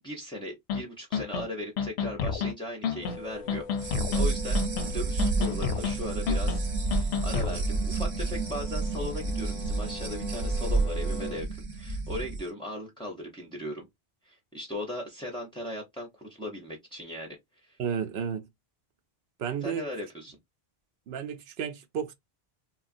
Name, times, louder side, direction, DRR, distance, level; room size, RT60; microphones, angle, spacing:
voice 1, 0.0-13.9 14.2-17.8 19.6-20.4, left 1 dB, 5° left, 0.4 m, -38 dB
sound 1, 0.7-0.8 1.1-1.4 1.8-2.5 2.8-3.2 3.5-4.2 4.5-4.9 5.2-5.9 6.3-6.6 6.9-7.6, left 6 dB, 85° left, 0.8 m, -30 dB
sound 2, 3.0-11.4, left 3 dB, 55° left, 0.6 m, -44 dB
sound 3, 3.8-12.4, right 3 dB, 55° right, 0.9 m, -30 dB
voice 2, 17.8-18.5 19.4-19.9 21.1-22.1, right 7 dB, 85° right, 0.8 m, -32 dB
2.9 x 2.4 x 2.5 m
omnidirectional pair, 1.0 m